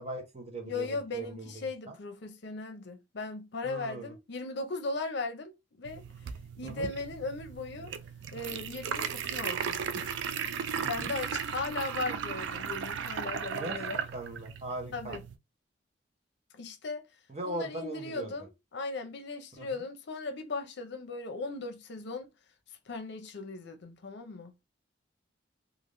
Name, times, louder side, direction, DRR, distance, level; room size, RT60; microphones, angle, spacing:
voice 1, 0.0-1.9 3.6-4.1 6.6-6.9 10.8-11.1 13.5-13.8 14.1-15.2 17.3-18.3 19.6-19.7, right 2 dB, 35° right, 0.8 m, -39 dB
voice 2, 0.6-6.0 6.6-8.0 8.3-10.2 10.9-14.0 14.9-15.2 16.5-17.1 17.5-22.3 22.9-24.5, left 3 dB, 65° left, 0.6 m, -38 dB
sound 1, 5.9-15.4, right 7 dB, 70° right, 0.3 m, -36 dB
3.3 x 2.5 x 2.5 m
head